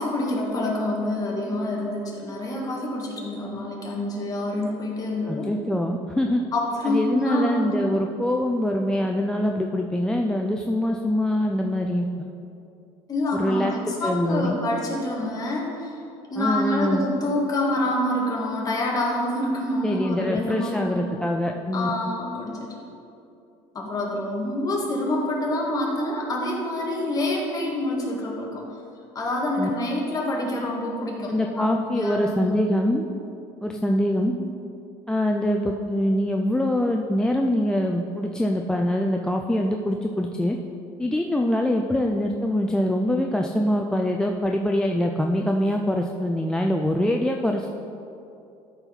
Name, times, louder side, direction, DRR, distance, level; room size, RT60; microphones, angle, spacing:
voice 1, 0.0-5.4 6.5-7.7 13.1-16.0 16.3-21.1 21.7-22.9 23.7-28.6 29.2-32.6 34.2-34.4, left 1 dB, 30° left, -2 dB, 1.7 m, -27 dB
voice 2, 5.3-6.4 6.9-12.3 13.3-13.7 14.0-14.6 16.4-17.1 19.8-21.9 29.6-29.7 31.3-33.0 33.6-34.3 35.1-40.6 41.0-47.7, left 1 dB, 5° left, 1 dB, 0.4 m, -24 dB
13.0 x 4.4 x 4.0 m, 2.7 s
cardioid pair, 120°, 12 cm